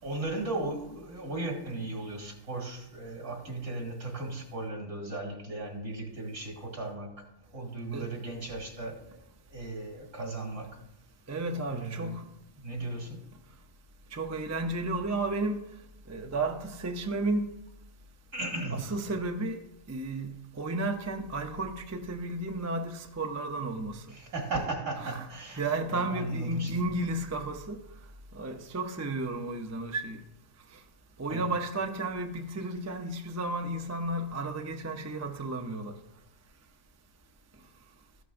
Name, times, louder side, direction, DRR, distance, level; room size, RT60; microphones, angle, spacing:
voice 1, 0.0-9.2 9.5-10.8 11.7-12.2 12.6-13.3 18.3-18.9 24.1-25.6 25.9-26.8 31.3-31.5, right 2 dB, 70° right, 2.5 m, -36 dB
voice 2, 11.3-12.2 14.1-15.6 16.1-17.5 18.7-19.6 19.9-24.0 25.0-25.3 25.6-27.8 28.3-30.2 31.2-35.9, right 2 dB, 20° right, 0.4 m, -33 dB
14.0 x 11.0 x 2.6 m
omnidirectional pair, 1.4 m